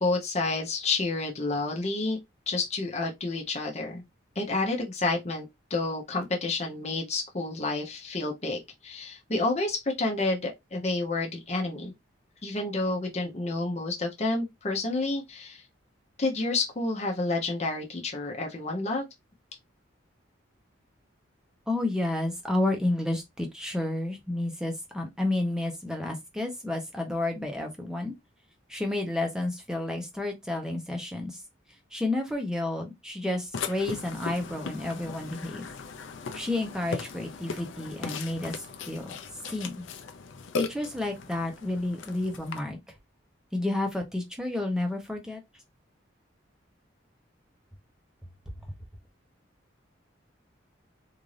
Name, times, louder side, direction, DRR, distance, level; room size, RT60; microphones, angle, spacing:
voice 1, 0.0-2.2 2.5-4.0 4.4-11.9 12.4-15.6 16.2-19.0, left 3 dB, 35° left, 0.8 m, -29 dB
voice 2, 21.7-28.1 28.7-31.4 31.9-35.7 36.3-39.2 39.5-39.9 40.5-42.8 43.5-45.4, left 2 dB, 5° right, 0.8 m, -31 dB
Burping eructation, 33.5-42.6, left 4 dB, 75° left, 0.5 m, -38 dB
3.7 x 2.6 x 3.2 m
head